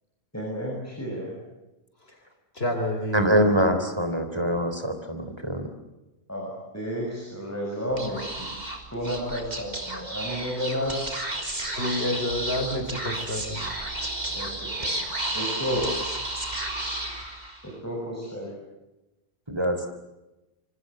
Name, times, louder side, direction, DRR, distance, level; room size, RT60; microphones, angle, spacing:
voice 1, 0.3-1.4 4.4-4.6 6.3-8.6 8.9-11.1 14.3-15.0 15.3-16.0 17.6-18.5, equal, 15° left, -2 dB, 7.2 m, -32 dB
voice 2, 2.5-3.2 11.7-13.7, left 1 dB, 65° left, 5 dB, 4.1 m, -29 dB
voice 3, 3.1-5.7 19.5-19.8, equal, 25° right, 7 dB, 3.9 m, -24 dB
Speech / Whispering, 7.9-17.7, right 1 dB, 40° right, 3.9 m, -32 dB
27.0 x 25.0 x 7.9 m, 0.99 s
omnidirectional pair, 1.1 m